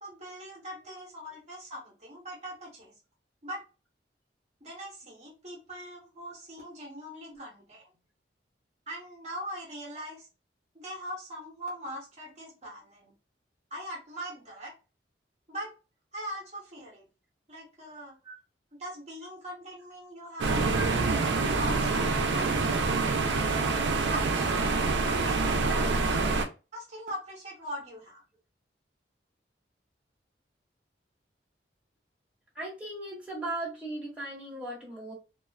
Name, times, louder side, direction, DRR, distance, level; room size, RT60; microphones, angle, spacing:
voice 1, 0.0-2.9 3.4-3.6 4.6-7.9 8.9-10.3 10.7-13.1 13.7-14.7 15.5-15.7 16.1-17.1 17.5-18.2 18.7-20.7 21.5-22.7 24.1-24.7 25.1-26.1 26.7-28.2, equal, 40° right, -3 dB, 0.8 m, -41 dB
sound 1, 20.4-26.4, right 3 dB, 80° right, 0.4 m, -26 dB
voice 2, 32.5-35.1, right 2 dB, 5° right, -6 dB, 0.9 m, -38 dB
2.4 x 2.3 x 2.2 m, 0.30 s
head